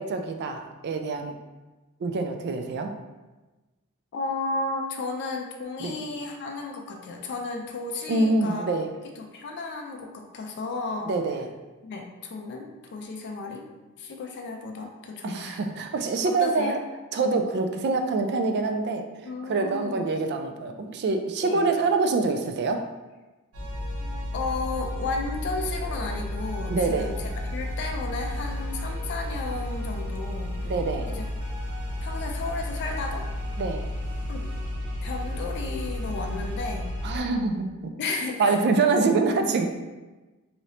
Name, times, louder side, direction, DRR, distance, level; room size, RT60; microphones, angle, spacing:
voice 1, 0.0-1.3 2.0-2.9 5.8-6.0 8.1-8.9 11.1-11.5 15.2-16.8 17.1-19.1 19.4-22.8 26.7-27.1 30.6-31.1 33.6-33.8 37.0-39.7, right 3 dB, 50° right, 6 dB, 0.3 m, -25 dB
voice 2, 4.1-8.7 9.2-11.1 11.8-13.7 14.0-15.6 16.2-16.8 19.2-20.0 21.4-21.6 24.3-27.2 27.4-30.7 31.1-31.2 32.0-33.2 34.3-34.4 35.0-36.9 38.0-38.6, left 3 dB, 50° left, 2 dB, 0.4 m, -33 dB
sound 1, 23.5-37.2, left 1 dB, 70° right, 0.7 m, -32 dB
3.1 x 2.7 x 2.7 m, 1.2 s
head